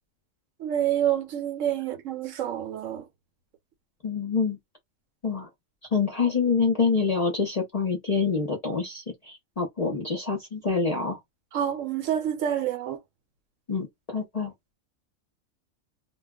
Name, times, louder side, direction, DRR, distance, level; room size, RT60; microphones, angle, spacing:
voice 1, 0.6-3.1 11.5-13.0, right 10 dB, 70° right, 0.9 m, -28 dB
voice 2, 4.0-4.6 5.2-5.5 5.9-11.2 13.7-14.5, left 5 dB, 40° left, 0.5 m, -26 dB
2.3 x 2.1 x 3.5 m
omnidirectional pair, 1.4 m